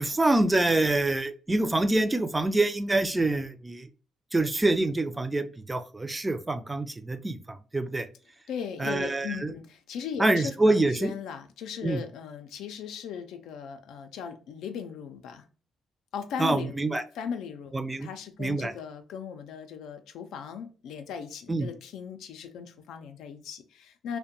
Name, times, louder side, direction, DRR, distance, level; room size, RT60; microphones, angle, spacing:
voice 1, 0.0-3.9 4.3-8.1 8.8-9.5 10.2-11.1 11.8-12.0 16.4-17.0 17.7-18.1 18.4-18.7 21.5-21.7, right 2 dB, 15° right, 10 dB, 0.4 m, -26 dB
voice 2, 8.5-15.4 16.1-16.9 17.1-24.2, left 7 dB, 85° left, 7 dB, 0.4 m, -38 dB
2.5 x 2.1 x 2.6 m, 0.37 s
cardioid pair, 90°, 0 cm